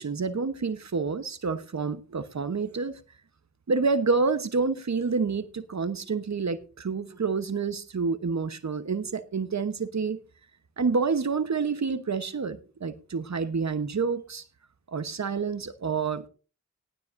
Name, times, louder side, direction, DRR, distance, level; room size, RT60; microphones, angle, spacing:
voice 1, 0.0-3.0 3.7-10.2 10.8-14.4 14.9-16.3, right 4 dB, 70° right, 1.0 m, -28 dB
18.0 x 12.0 x 2.6 m
cardioid pair, 45°, 29 cm